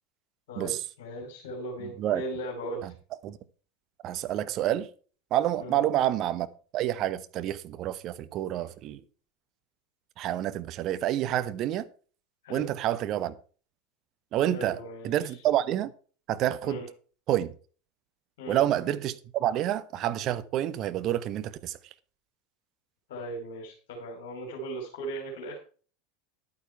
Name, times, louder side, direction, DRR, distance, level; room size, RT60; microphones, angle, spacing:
voice 1, 0.5-2.9 5.6-5.8 12.4-12.7 14.5-15.4 16.6-16.9 18.4-18.6 23.1-25.6, right 1 dB, 60° left, 3.1 m, -38 dB
voice 2, 1.8-2.2 2.8-2.9 3.2-3.4 4.0-4.9 5.3-6.5 6.7-9.0 10.2-11.9 12.5-13.3 14.3-14.8 15.0-15.9 16.3-16.8 17.3-17.5 18.5-21.8, right 12 dB, 40° right, 1.1 m, -28 dB
11.0 x 9.3 x 4.5 m
figure-of-eight pair, 80°, 0 cm